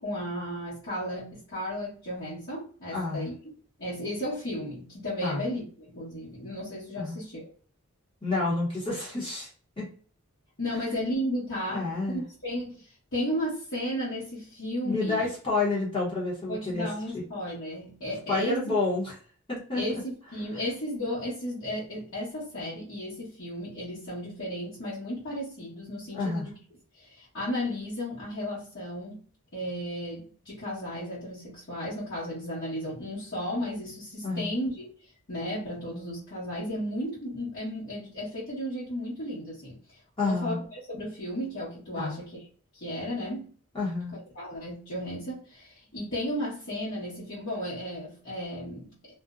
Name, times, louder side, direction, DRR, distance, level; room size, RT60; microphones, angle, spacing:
voice 1, 0.0-3.3 3.8-7.5 10.6-15.3 16.5-18.6 19.7-26.5 27.0-29.2 29.5-34.9 35.3-42.4 42.7-43.5 44.1-48.9, equal, 55° left, -12 dB, 1.1 m, -34 dB
voice 2, 2.9-3.3 5.2-5.4 7.0-7.2 8.2-9.5 9.8-9.9 11.7-12.2 14.8-16.9 17.1-17.2 18.3-19.1 19.5-20.0 26.1-26.4 34.2-34.5 40.2-40.6 42.0-42.2 43.7-44.2, left 3 dB, 25° left, -6 dB, 0.8 m, -29 dB
2.5 x 2.1 x 2.4 m, 0.44 s
head